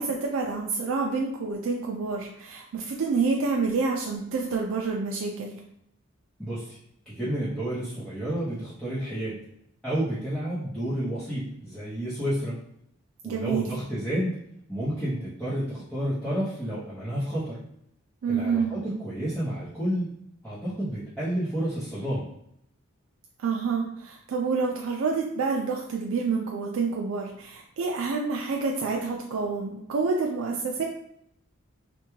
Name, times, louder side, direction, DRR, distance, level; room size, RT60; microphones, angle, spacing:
voice 1, 0.0-5.6 13.2-13.7 18.2-18.8 23.4-30.8, right 4 dB, 85° right, 1 dB, 0.4 m, -28 dB
voice 2, 6.4-6.8 7.1-9.4 9.8-12.6 13.2-14.4 14.7-17.6 18.3-20.1 20.4-22.3, right 1 dB, 5° left, -12 dB, 0.7 m, -30 dB
3.4 x 2.2 x 3.0 m, 0.75 s
head